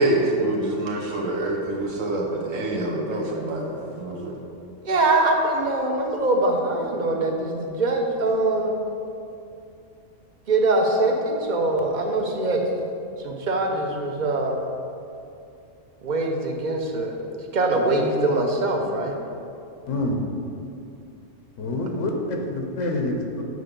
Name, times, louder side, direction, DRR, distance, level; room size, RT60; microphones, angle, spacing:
voice 1, 0.0-4.4, right 1 dB, 85° right, -2 dB, 1.3 m, -26 dB
voice 2, 3.0-3.4 4.8-8.7 10.5-12.6 13.2-14.6 16.0-17.1 17.5-19.2, right 2 dB, 45° right, 2 dB, 0.8 m, -23 dB
voice 3, 19.9-20.2 21.6-23.4, left 1 dB, 80° left, 2 dB, 1.1 m, -26 dB
6.8 x 4.6 x 5.1 m, 2.6 s
omnidirectional pair, 1.3 m